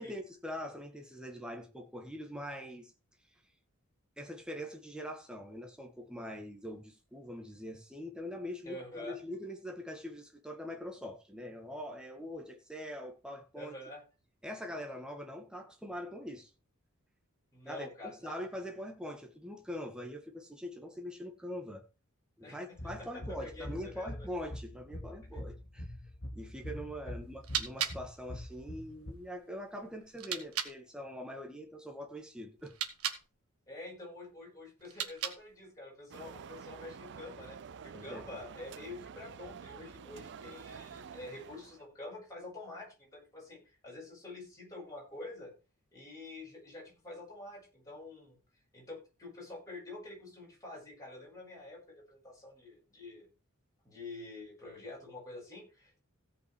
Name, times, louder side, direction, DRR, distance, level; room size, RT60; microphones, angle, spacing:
voice 1, 0.0-2.9 4.2-13.8 14.4-16.5 17.7-21.8 22.4-25.9 26.3-32.7 37.9-38.3, equal, 5° right, 1.8 m, -43 dB
voice 2, 8.6-9.2 13.5-14.0 17.5-18.4 22.4-24.3 33.7-45.5 45.9-48.4 48.7-53.3 53.8-56.0, left 2 dB, 15° left, 7.3 m, -47 dB
sound 1, 22.8-29.1, left 1 dB, 50° left, 1.8 m, -44 dB
sound 2, 27.2-30.8 32.6-33.3 34.8-35.6, right 9 dB, 80° right, 1.5 m, -39 dB
sound 3, 36.1-41.8, right 6 dB, 55° right, 0.4 m, -49 dB
16.5 x 5.7 x 4.6 m
head